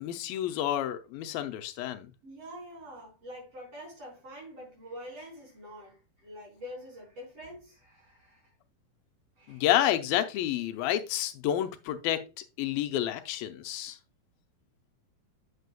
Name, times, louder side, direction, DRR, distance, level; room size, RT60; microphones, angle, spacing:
voice 1, 0.0-2.1 9.5-12.3 12.6-14.0, left 12 dB, 85° left, 2.4 m, -29 dB
voice 2, 2.2-8.5 9.4-9.7, equal, 40° right, 5.6 m, -46 dB
8.3 x 8.2 x 2.2 m
omnidirectional pair, 4.1 m